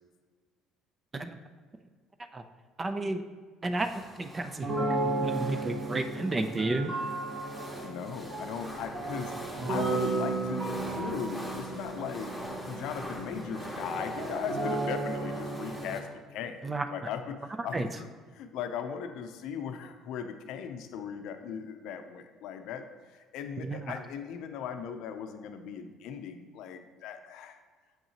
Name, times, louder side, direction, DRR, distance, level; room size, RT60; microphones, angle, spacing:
voice 1, 2.8-3.2 3.6-3.9 4.2-6.9 16.6-16.9 17.7-17.9 23.6-23.8, right 2 dB, 25° right, 8 dB, 0.5 m, -32 dB
sound 1, 3.8-16.0, equal, 10° right, 1.6 m, -43 dB
sound 2, 4.6-15.9, right 2 dB, 60° right, 2.0 m, -34 dB
voice 2, 7.8-12.3 12.6-18.1 18.3-27.6, left 7 dB, 75° left, 7 dB, 0.6 m, -38 dB
7.3 x 5.5 x 2.9 m, 1.5 s
supercardioid pair, 95°, 0 cm